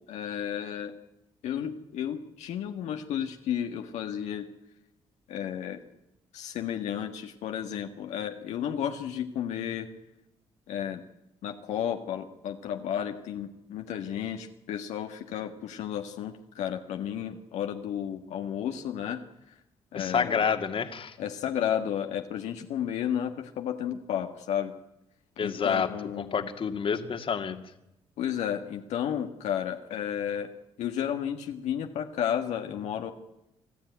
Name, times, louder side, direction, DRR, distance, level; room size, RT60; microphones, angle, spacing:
voice 1, 0.1-0.9 1.4-4.5 5.3-5.8 6.3-9.9 10.7-11.0 11.4-19.2 19.9-20.4 21.2-24.7 25.4-26.5 28.2-30.5 30.8-33.1, left 9 dB, 80° left, 4 dB, 1.5 m, -32 dB
voice 2, 19.9-21.2 25.4-25.9 26.2-27.6, left 6 dB, 50° left, 7 dB, 2.1 m, -28 dB
25.5 x 14.0 x 9.3 m, 0.88 s
cardioid pair, 80°, 12 cm